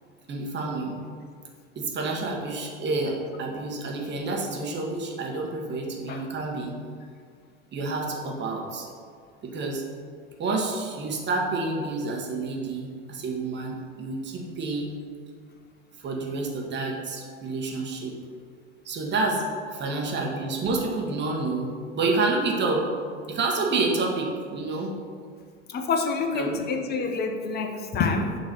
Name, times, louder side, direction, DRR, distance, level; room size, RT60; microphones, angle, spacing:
voice 1, 0.3-0.9 1.7-6.7 7.7-8.9 9.4-9.8 10.4-15.0 16.0-18.1 18.8-22.9 23.3-24.9 26.3-26.6, right 3 dB, 30° right, 0 dB, 1.2 m, -29 dB
voice 2, 25.7-28.4, left 4 dB, 25° left, 5 dB, 0.7 m, -27 dB
6.6 x 3.1 x 5.6 m, 2.1 s
figure-of-eight pair, 85°, 38 cm